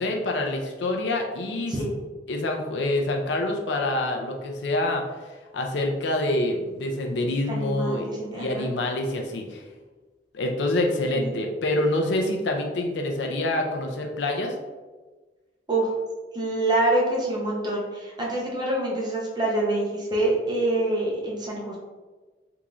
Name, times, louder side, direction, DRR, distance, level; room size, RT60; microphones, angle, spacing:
voice 1, 0.0-1.7 2.3-5.0 5.5-9.6 10.3-14.5, left 1 dB, 80° left, 2 dB, 0.5 m, -26 dB
voice 2, 7.5-8.7 11.1-11.4 15.7-15.9 16.3-21.8, right 2 dB, 25° right, -4 dB, 0.8 m, -26 dB
3.6 x 3.0 x 2.5 m, 1.3 s
head